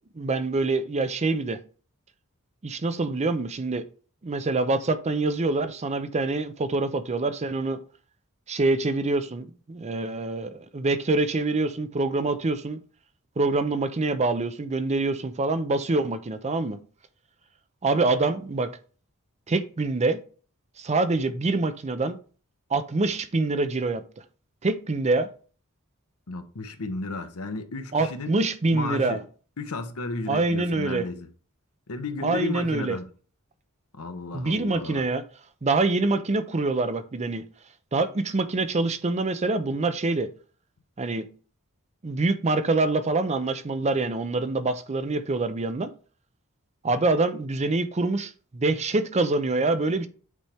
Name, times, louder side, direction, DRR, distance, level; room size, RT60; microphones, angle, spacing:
voice 1, 0.2-1.6 2.6-3.8 4.2-7.8 8.5-12.8 13.4-16.8 17.8-18.7 19.5-20.2 20.8-22.2 22.7-24.0 24.6-25.3 27.9-29.2 30.3-31.0 32.2-33.0 34.3-35.2 35.6-37.4 37.9-40.3 41.0-41.3 42.0-45.9 46.8-50.1, right 3 dB, 30° right, 0.5 m, -25 dB
voice 2, 26.3-28.3 28.7-29.2 29.6-31.3 31.9-33.1 33.9-35.1, left 3 dB, 75° left, 0.9 m, -33 dB
8.2 x 4.4 x 3.4 m
head